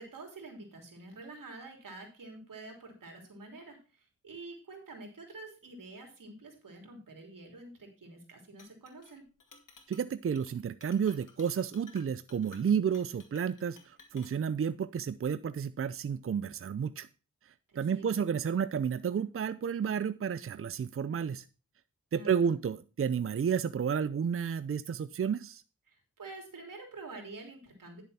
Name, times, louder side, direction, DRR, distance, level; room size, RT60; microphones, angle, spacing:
voice 1, 0.0-9.3 17.7-18.2 22.1-22.5 25.9-28.0, right 2 dB, 85° right, 2 dB, 3.4 m, -48 dB
Chink clink, 8.6-9.1 9.4-10.1 10.4-10.5 10.8-14.4, left 4 dB, 70° left, 2.3 m, -56 dB
voice 2, 9.9-17.1 17.5-21.5 22.1-25.6, right 7 dB, 45° right, 14 dB, 0.5 m, -31 dB
10.5 x 7.0 x 4.3 m, 0.34 s
cardioid pair, 55°, 32 cm